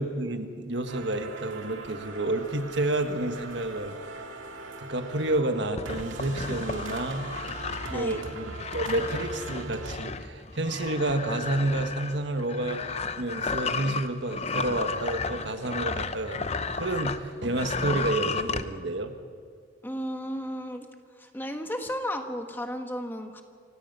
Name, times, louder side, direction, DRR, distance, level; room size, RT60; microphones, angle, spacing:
voice 1, 0.0-4.0 4.8-7.3 7.9-16.5 16.8-19.1, right 2 dB, 60° right, 7 dB, 1.5 m, -30 dB
sound 1, 0.9-10.0, right 2 dB, 80° right, 2.1 m, -41 dB
sound 2, 5.8-17.2 17.5-18.6, left 4 dB, 30° left, 0.7 m, -33 dB
voice 2, 7.9-8.2 19.8-20.9 21.2-23.4, equal, 10° left, 5 dB, 1.3 m, -34 dB
27.5 x 17.5 x 5.5 m, 2.3 s
head